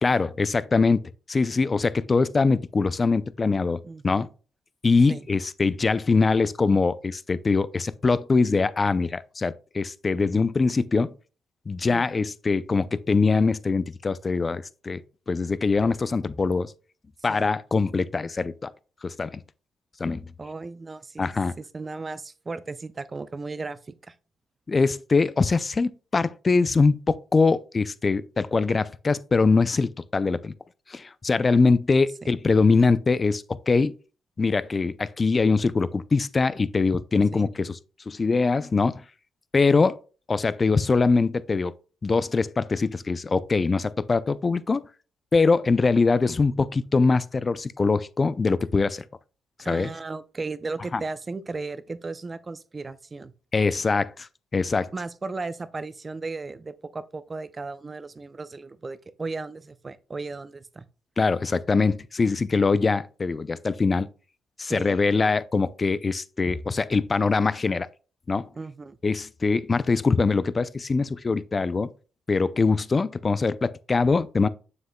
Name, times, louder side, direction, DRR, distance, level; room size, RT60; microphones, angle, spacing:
voice 1, 0.0-1.0 1.3-3.8 4.0-4.3 4.8-11.1 11.7-15.0 15.3-16.7 17.2-18.7 19.0-19.3 20.0-20.2 21.2-21.5 24.7-30.5 30.9-33.9 34.4-37.7 38.1-39.0 39.5-40.0 40.3-41.7 42.0-44.8 45.3-49.0 49.7-49.9 50.9-51.0 53.5-54.9 61.2-64.1 64.6-67.9 68.3-68.5 69.0-71.9 72.3-74.5, left 4 dB, 30° left, 0.4 m, -23 dB
voice 2, 3.8-4.3 5.1-5.3 11.9-12.2 17.3-17.5 20.4-24.1 32.2-32.3 37.3-37.5 46.6-46.7 49.6-53.3 54.9-60.9 64.6-64.9 68.6-69.0, right 3 dB, 30° right, 0.5 m, -36 dB
7.1 x 6.4 x 2.2 m
cardioid pair, 90°, 0 cm